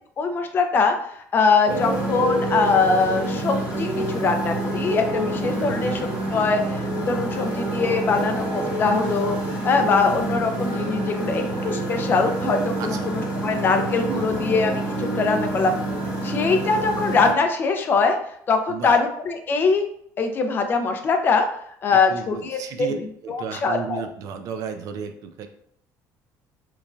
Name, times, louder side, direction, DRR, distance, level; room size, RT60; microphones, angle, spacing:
voice 1, 0.2-15.7 16.2-18.2 18.5-19.9 20.2-21.5 21.8-22.9 23.3-24.0, left 4 dB, 30° left, 5 dB, 0.3 m, -22 dB
Motorcycle, 1.7-17.3, right 1 dB, 20° right, 0.9 m, -27 dB
voice 2, 5.6-5.9 12.8-13.1 14.1-14.3 18.7-19.0 21.9-22.9 23.2-25.5, right 6 dB, 55° right, 7 dB, 0.3 m, -33 dB
3.1 x 2.5 x 2.2 m, 0.68 s
cardioid pair, 155°, 7 cm